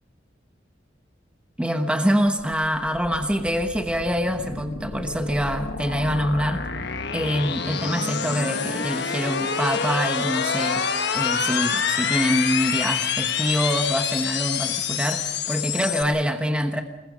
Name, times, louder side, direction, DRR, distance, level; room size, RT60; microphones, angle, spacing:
voice 1, 1.6-6.6 7.1-10.8 11.1-16.8, equal, 5° right, 5 dB, 1.1 m, -25 dB
sound 1, 2.4-16.0, left 6 dB, 60° left, 1.4 m, -27 dB
28.0 x 20.5 x 5.3 m, 1.1 s
head